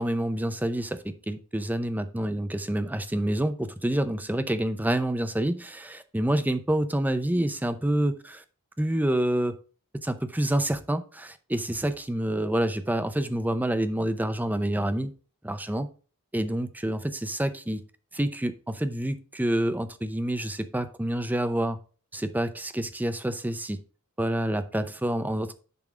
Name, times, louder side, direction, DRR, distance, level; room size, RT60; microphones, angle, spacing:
voice 1, 0.0-8.4 8.8-9.5 10.0-15.1 15.4-15.9 16.3-17.8 18.1-21.8 22.1-23.8 24.2-25.5, right 1 dB, 10° right, 10 dB, 0.6 m, -27 dB
10.5 x 3.6 x 4.9 m, 0.38 s
head